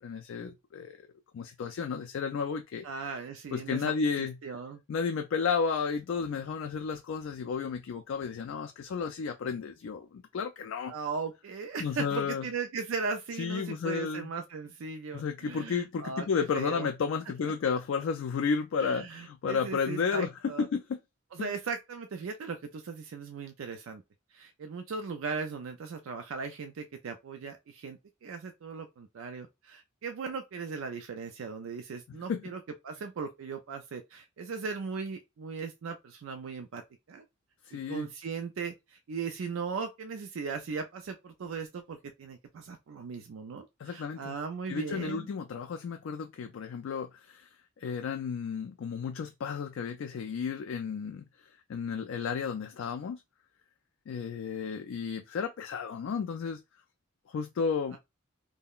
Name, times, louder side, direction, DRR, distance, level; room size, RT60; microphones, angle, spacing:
voice 1, 0.0-1.0 1.3-2.8 3.5-4.4 4.9-10.9 11.8-12.4 13.4-14.3 15.1-20.3 20.6-20.8 21.4-21.5 32.1-32.4 37.6-38.1 43.8-44.4 44.7-47.5 47.8-53.2 54.1-56.6 57.3-58.0, left 5 dB, 70° left, 0.3 m, -32 dB
voice 2, 2.8-3.9 4.2-4.8 10.9-16.9 18.8-20.7 21.3-24.0 24.3-36.8 37.1-37.3 37.7-45.3 57.9-58.0, right 5 dB, 75° right, 0.4 m, -38 dB
3.6 x 2.1 x 2.3 m
head